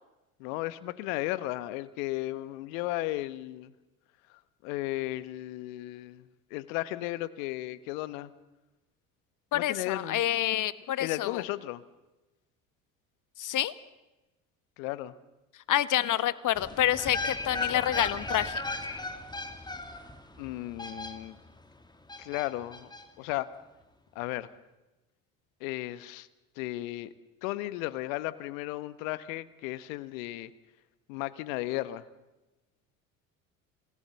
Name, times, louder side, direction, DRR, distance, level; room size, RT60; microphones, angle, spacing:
voice 1, 0.4-3.7 4.6-6.2 6.5-8.3 9.5-10.2 11.0-11.8 14.8-15.1 20.4-21.4 22.2-22.9 23.2-23.5 24.1-24.5 25.6-26.3 26.6-27.1 27.4-30.5 31.1-32.0, left 17 dB, 70° left, 15 dB, 1.4 m, -34 dB
voice 2, 9.5-11.4 13.4-13.7 15.7-18.6, left 12 dB, 45° left, 16 dB, 1.3 m, -28 dB
sound 1, 16.6-21.6 22.1-23.0 23.3-23.4, left 2 dB, 10° left, 2.4 m, -36 dB
28.5 x 19.0 x 7.0 m, 1.1 s
hypercardioid pair, 70°, 42 cm